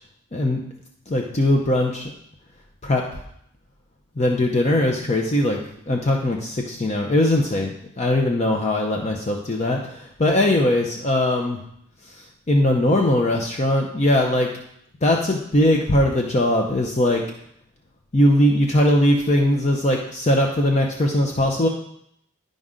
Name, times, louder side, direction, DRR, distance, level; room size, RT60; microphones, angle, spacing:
voice 1, 1.1-2.1 2.8-3.0 4.2-5.6 5.9-11.6 12.5-14.5 15.0-17.2 18.1-21.7, left 1 dB, 30° left, 1 dB, 0.6 m, -20 dB
10.5 x 5.2 x 3.7 m, 0.72 s
head